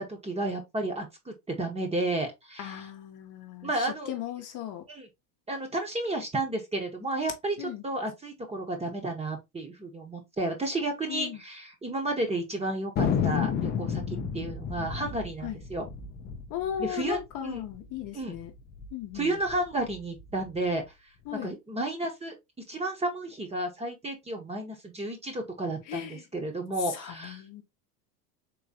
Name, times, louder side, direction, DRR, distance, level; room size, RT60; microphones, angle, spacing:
voice 1, 0.1-2.8 3.6-4.1 4.9-5.1 5.5-15.8 16.8-17.6 18.1-18.3 19.1-20.8 21.3-22.3 22.7-27.4, right 2 dB, 15° right, 1.0 m, -32 dB
voice 2, 2.6-4.8 7.6-7.8 11.1-11.4 15.4-15.6 16.5-18.5 18.9-19.4 21.3-21.6 25.9-26.2 26.9-27.6, left 10 dB, 40° left, 0.8 m, -37 dB
Thunder, 13.0-17.8 18.0-18.1 18.3-18.9 19.4-20.6, left 7 dB, 20° left, 0.4 m, -31 dB
3.8 x 3.0 x 2.8 m
hypercardioid pair, 110°, 48 cm